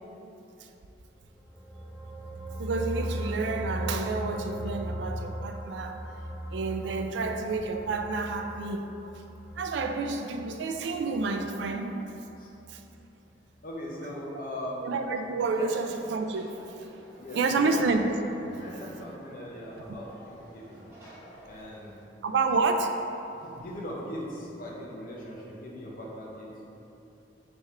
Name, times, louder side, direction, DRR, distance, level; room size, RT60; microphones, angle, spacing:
sound 1, 1.3-12.0 12.3-12.5, right 1 dB, 5° left, 0.3 m, -38 dB
voice 1, 2.6-6.0 6.5-8.9 9.6-12.0 12.7-12.8 14.8-16.9 17.3-18.1 22.2-22.9, right 3 dB, 80° right, 6 dB, 0.3 m, -29 dB
voice 2, 13.6-14.8 15.6-15.7 17.2-17.7 18.6-20.9 21.4-22.0 23.4-26.6, equal, 50° left, -4 dB, 0.8 m, -40 dB
Conversation / Crowd, 15.4-21.6, equal, 15° right, 1.3 m, -52 dB
3.5 x 3.4 x 4.2 m, 2.9 s
head